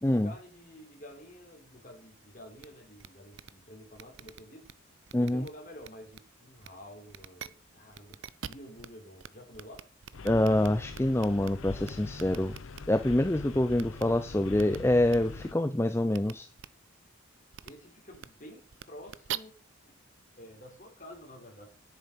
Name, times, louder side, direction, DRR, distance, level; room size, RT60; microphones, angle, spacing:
voice 1, 0.1-4.7 5.1-9.9 17.6-19.5 19.8-19.9 20.4-21.7, equal, 40° left, 4.0 m, -50 dB
sound 1, 2.6-2.7 3.0-3.1 3.3-3.5 3.9-4.7 5.1-5.5 5.8-6.2 6.6-6.7 7.1-7.5 7.9-8.9 9.2-9.3 9.5-11.5 11.8-12.8 13.7-14.0 14.5-14.8 15.1-15.2 16.1-16.3 16.6-16.7 17.5-17.7 18.1-18.3 18.7-19.4, right 10 dB, 65° right, 0.5 m, -42 dB
voice 2, 5.1-5.4 10.2-12.6 12.9-16.5, left 1 dB, 10° left, 0.4 m, -26 dB
sound 2, 10.1-15.5, left 4 dB, 75° left, 0.6 m, -43 dB
10.0 x 8.2 x 5.3 m
head